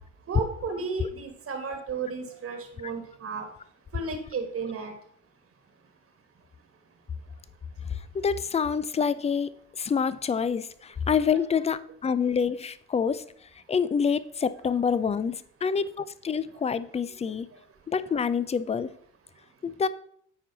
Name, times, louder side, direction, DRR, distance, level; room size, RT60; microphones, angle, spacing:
voice 1, 0.3-3.5 3.9-4.9, right 4 dB, 40° right, 5 dB, 1.5 m, -33 dB
voice 2, 7.9-9.5 9.8-13.2 13.7-17.5 17.9-18.9 19.6-19.9, left 6 dB, 20° left, 16 dB, 0.4 m, -27 dB
9.0 x 4.6 x 4.0 m, 0.64 s
hypercardioid pair, 55°, 36 cm